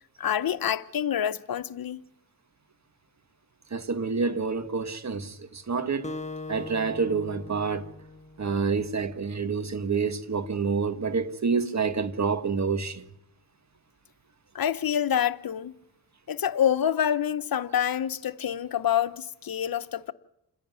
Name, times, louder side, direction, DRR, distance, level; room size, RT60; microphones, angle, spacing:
voice 1, 0.2-2.0 14.5-15.7 16.3-20.1, left 9 dB, 60° left, 1.0 m, -27 dB
voice 2, 3.7-6.1 6.5-7.9 8.4-13.0, right 5 dB, 45° right, 1.7 m, -28 dB
Acoustic guitar, 6.0-8.8, left 3 dB, 15° left, 1.3 m, -40 dB
28.5 x 10.5 x 9.6 m
cardioid pair, 75°, 39 cm